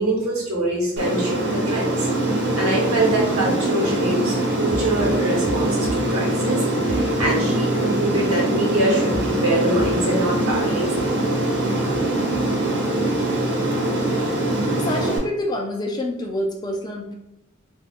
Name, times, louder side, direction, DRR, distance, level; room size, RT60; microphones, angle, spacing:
voice 1, 0.0-2.1 2.6-11.1, right 1 dB, 75° right, -2 dB, 1.0 m, -24 dB
Aircraft, 1.0-15.2, right 1 dB, 55° right, 0.6 m, -22 dB
voice 2, 14.2-17.1, left 1 dB, 20° left, 1 dB, 0.3 m, -28 dB
2.3 x 2.1 x 3.5 m, 0.89 s
head